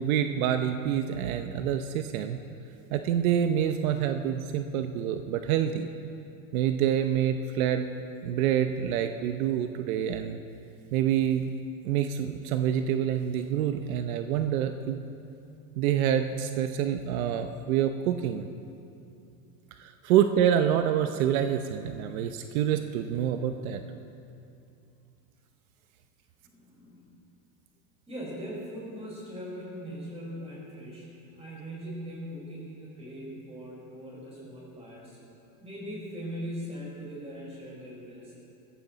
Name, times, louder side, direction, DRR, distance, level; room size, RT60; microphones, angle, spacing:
voice 1, 0.0-2.4 2.9-5.9 6.5-7.9 8.2-10.4 10.9-11.4 11.8-15.0 15.8-18.5 19.8-23.8, right 9 dB, 75° right, 7 dB, 0.8 m, -27 dB
voice 2, 26.4-27.2 28.1-31.1 31.3-35.2 35.6-38.3, equal, 15° right, -4 dB, 4.7 m, -40 dB
20.5 x 15.0 x 4.0 m, 2.7 s
supercardioid pair, 160°, 43 cm